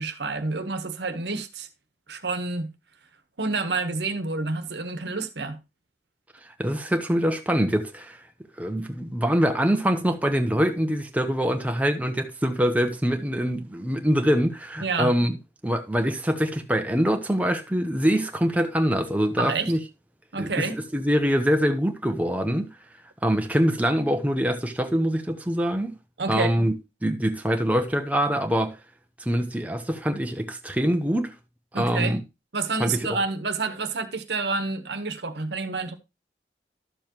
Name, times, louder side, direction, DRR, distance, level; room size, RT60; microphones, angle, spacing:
voice 1, 0.0-1.7 2.1-2.7 3.4-5.6 14.8-15.1 19.4-19.7 20.3-20.8 26.2-26.5 31.7-32.2 32.5-36.0, right 3 dB, 80° right, 1.2 m, -28 dB
voice 2, 6.6-8.2 8.6-15.4 15.6-19.8 20.4-20.7 20.9-22.7 23.2-25.9 26.3-26.7 27.0-28.8 29.2-31.3 31.7-32.2 32.8-33.1, equal, 10° right, 0.8 m, -24 dB
12.0 x 7.0 x 3.0 m
head